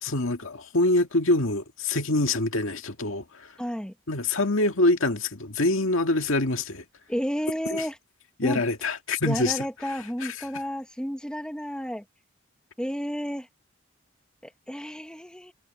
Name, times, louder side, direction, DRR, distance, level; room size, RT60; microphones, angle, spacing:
voice 1, 0.0-3.5 4.1-6.8 7.7-7.8 8.4-9.7, left 2 dB, 70° left, 2.0 m, -25 dB
voice 2, 3.6-3.9 7.1-8.0 8.4-8.6 9.2-12.0 12.8-13.5 14.4-15.5, equal, 5° left, 1.4 m, -31 dB
head